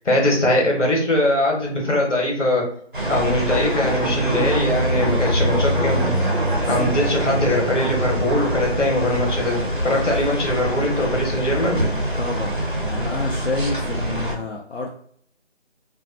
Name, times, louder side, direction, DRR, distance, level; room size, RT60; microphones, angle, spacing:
voice 1, 0.0-2.6 3.1-6.1 6.7-11.8, left 1 dB, 80° left, -1 dB, 1.2 m, -21 dB
sound 1, 2.9-14.4, right 1 dB, 45° right, 0.4 m, -24 dB
sound 2, 3.5-9.6, equal, 30° left, 0.8 m, -32 dB
voice 2, 6.5-6.9 12.1-14.9, left 3 dB, 60° left, -2 dB, 0.5 m, -29 dB
2.6 x 2.1 x 2.5 m, 0.62 s
figure-of-eight pair, 175°, 36 cm